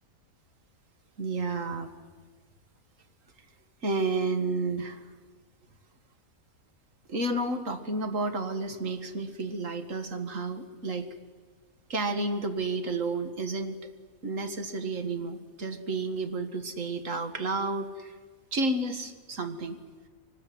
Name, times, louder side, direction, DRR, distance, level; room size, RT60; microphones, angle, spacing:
voice 1, 1.2-1.9 3.8-5.1 7.1-11.1 11.9-13.8 14.2-18.2 18.5-19.8, right 3 dB, 60° right, 8 dB, 2.2 m, -31 dB
24.0 x 19.5 x 9.4 m, 1.5 s
omnidirectional pair, 1.5 m